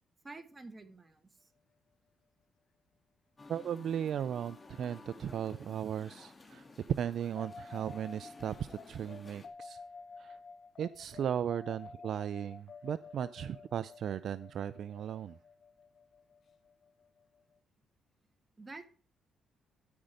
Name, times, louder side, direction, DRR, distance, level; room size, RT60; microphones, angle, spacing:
voice 1, 0.2-1.5 18.6-18.9, right 3 dB, 20° right, 1.7 m, -49 dB
Musical instrument, 3.4-9.5, left 3 dB, 25° left, 1.7 m, -54 dB
voice 2, 3.5-6.7 7.0-9.8 10.2-10.4 10.8-15.4, right 9 dB, 65° right, 0.4 m, -37 dB
sound 1, 7.4-17.5, left 4 dB, 55° left, 0.9 m, -51 dB
13.0 x 5.3 x 5.0 m
cardioid pair, 90°, 0 cm